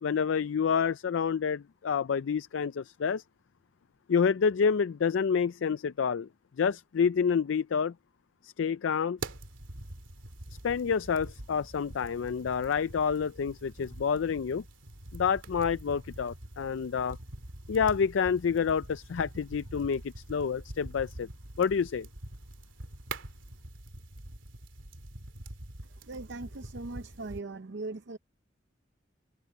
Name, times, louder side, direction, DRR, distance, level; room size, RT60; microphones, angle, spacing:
voice 1, 0.0-3.2 4.1-6.3 6.6-7.9 8.4-9.2 10.6-14.6 15.1-17.2 17.7-21.3 21.6-22.1, left 6 dB, 80° left, 0.4 m, -28 dB
sound 1, 9.2-27.4, right 2 dB, 90° right, 2.6 m, -45 dB
voice 2, 26.1-28.2, right 3 dB, 65° right, 0.7 m, -39 dB
head